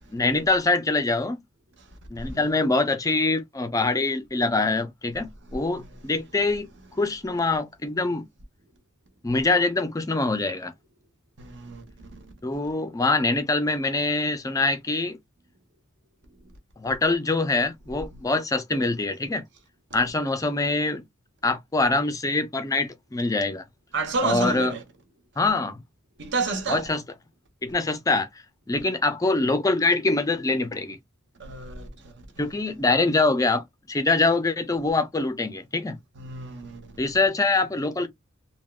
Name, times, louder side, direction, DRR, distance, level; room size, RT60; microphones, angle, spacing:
voice 1, 0.1-1.4 2.1-6.7 7.0-8.3 9.2-10.7 12.4-15.2 16.8-19.4 19.9-21.0 21.4-23.6 24.2-24.7 25.4-25.8 26.7-27.0 27.6-28.3 28.7-31.0 32.4-36.0 37.0-38.1, left 3 dB, 15° left, 0.4 m, -24 dB
voice 2, 2.2-2.5 5.7-6.1 11.4-12.3 18.1-18.2 23.9-24.8 26.2-26.8 31.4-32.5 36.1-37.0, right 3 dB, 60° right, 1.0 m, -31 dB
3.5 x 2.1 x 2.3 m
head